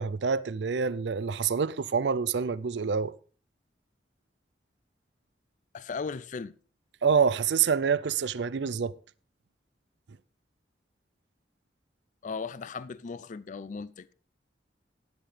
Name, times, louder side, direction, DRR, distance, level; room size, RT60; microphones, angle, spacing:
voice 1, 0.0-3.1 7.0-8.9, right 6 dB, 70° right, 0.5 m, -27 dB
voice 2, 5.7-6.5 12.2-14.1, left 5 dB, 45° left, 0.4 m, -37 dB
13.0 x 11.0 x 3.3 m
head